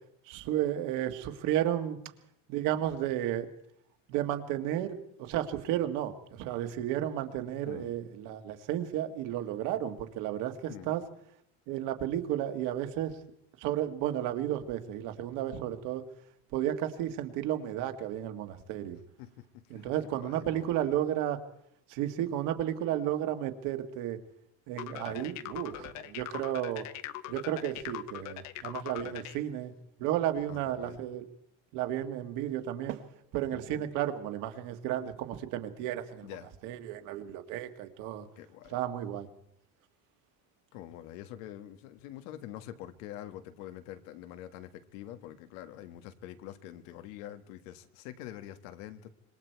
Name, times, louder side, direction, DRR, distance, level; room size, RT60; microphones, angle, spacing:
voice 1, 0.3-2.0 2.5-3.5 4.1-11.0 11.7-13.2 13.6-16.0 16.5-19.0 19.7-21.4 21.9-24.2 24.7-26.9 27.3-29.7 30.0-31.2 31.7-33.0 33.3-36.3 36.6-38.3 38.7-39.3, right 12 dB, 55° right, 7 dB, 1.9 m, -33 dB
voice 2, 19.2-21.0 25.0-25.4 29.0-29.2 30.5-31.0 33.5-33.9 36.2-36.5 38.4-38.8 40.7-49.1, left 12 dB, 80° left, 10 dB, 1.7 m, -46 dB
sound 1, 24.8-29.4, left 14 dB, 45° left, 1.0 m, -41 dB
26.0 x 22.0 x 4.6 m, 0.72 s
cardioid pair, 170°, 38 cm